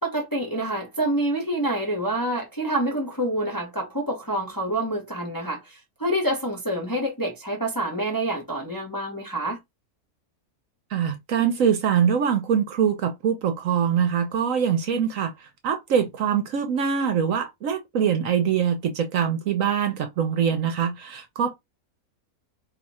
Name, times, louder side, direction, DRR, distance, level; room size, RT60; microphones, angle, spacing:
voice 1, 0.0-9.6, right 1 dB, 20° left, 0.6 m, -27 dB
voice 2, 10.9-21.5, right 7 dB, 65° right, 1.0 m, -23 dB
2.8 x 2.3 x 4.1 m
omnidirectional pair, 1.7 m